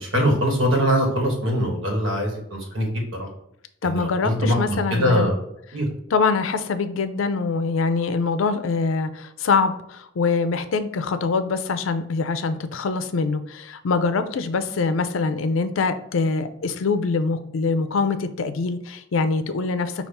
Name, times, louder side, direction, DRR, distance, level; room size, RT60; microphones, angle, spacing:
voice 1, 0.0-2.9 3.2-3.3 3.8-5.4 5.7-5.9, equal, 85° right, 0 dB, 1.3 m, -22 dB
voice 2, 3.8-5.3 6.1-20.1, left 4 dB, 90° left, 10 dB, 0.4 m, -24 dB
5.5 x 2.4 x 3.4 m, 0.76 s
head